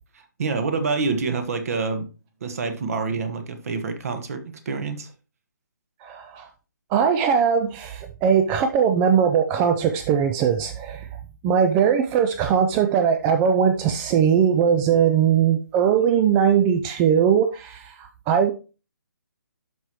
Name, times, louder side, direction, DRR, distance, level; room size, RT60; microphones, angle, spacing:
voice 1, 0.1-2.1 2.4-5.1, right 4 dB, 50° right, 1.4 m, -27 dB
voice 2, 6.0-6.5 6.9-11.0 11.4-18.5, right 7 dB, 15° right, 0.3 m, -20 dB
11.5 x 4.8 x 3.0 m
figure-of-eight pair, 145°, 11 cm